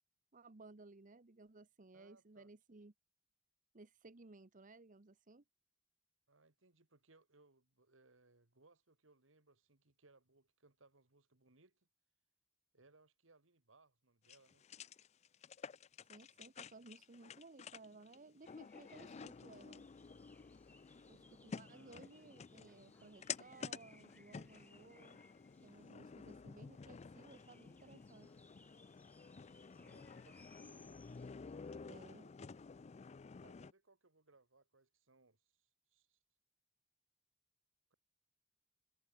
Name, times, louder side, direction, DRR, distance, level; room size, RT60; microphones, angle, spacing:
voice 1, 0.3-2.9 3.7-5.4 16.1-19.9 21.1-25.2 25.6-28.3 31.9-32.2, right 3 dB, 45° right, 1.0 m, -59 dB
voice 2, 1.9-2.5 6.3-11.9 12.7-14.6 21.7-22.1 29.7-30.8 31.6-32.4 33.3-36.2, right 3 dB, 90° right, 2.3 m, -69 dB
sound 1, 14.3-33.7, left 6 dB, 35° left, 0.4 m, -52 dB
sound 2, 18.4-31.8, left 2 dB, 10° left, 3.3 m, -68 dB
head